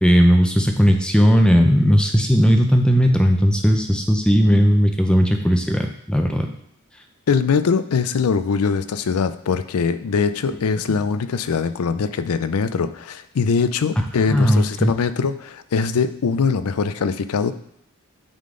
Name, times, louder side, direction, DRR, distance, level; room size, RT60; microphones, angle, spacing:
voice 1, 0.0-6.5 14.3-14.9, equal, 5° left, 4 dB, 0.6 m, -16 dB
voice 2, 7.3-17.5, left 5 dB, 85° left, 12 dB, 0.4 m, -22 dB
8.9 x 3.8 x 3.8 m, 0.72 s
head